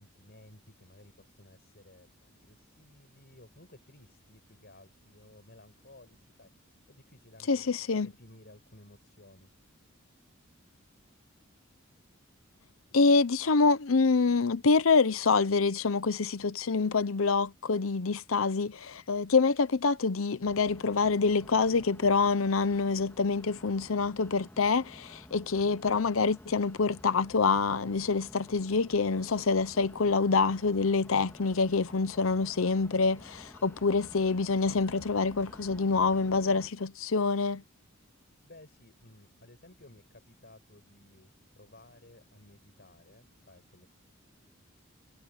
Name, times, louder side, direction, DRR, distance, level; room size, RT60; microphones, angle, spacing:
voice 1, 0.0-9.5 38.4-43.9, left 1 dB, 50° left, 6.8 m, -56 dB
voice 2, 7.5-8.1 12.9-37.6, left 4 dB, 80° left, 0.8 m, -26 dB
sound 1, 20.4-36.7, equal, 10° left, 1.8 m, -51 dB
head